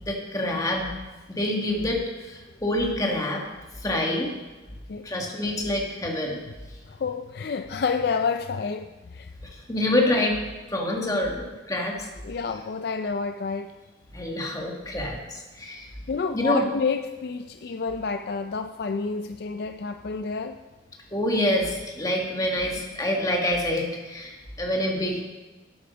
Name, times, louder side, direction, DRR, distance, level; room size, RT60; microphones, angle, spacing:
voice 1, 0.0-0.9 1.3-3.4 3.8-4.3 5.0-6.4 9.7-10.4 10.7-12.1 14.1-15.9 16.3-16.7 21.1-25.2, left 1 dB, 20° left, 0 dB, 1.7 m, -26 dB
voice 2, 6.9-9.3 11.2-11.3 12.2-13.8 16.1-20.6, left 5 dB, 55° left, 8 dB, 0.4 m, -29 dB
12.5 x 8.4 x 5.2 m, 1.2 s
head